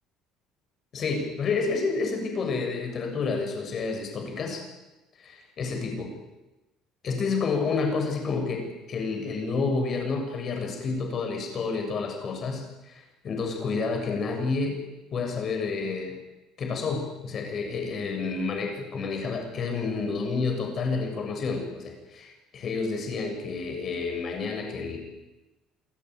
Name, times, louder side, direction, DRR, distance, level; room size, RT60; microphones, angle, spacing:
voice 1, 0.9-4.6 5.2-6.1 7.0-14.8 15.1-16.2 16.6-25.0, left 4 dB, 40° left, 3 dB, 7.2 m, -29 dB
27.5 x 17.5 x 9.6 m, 1.0 s
cardioid pair, 140°, 0 cm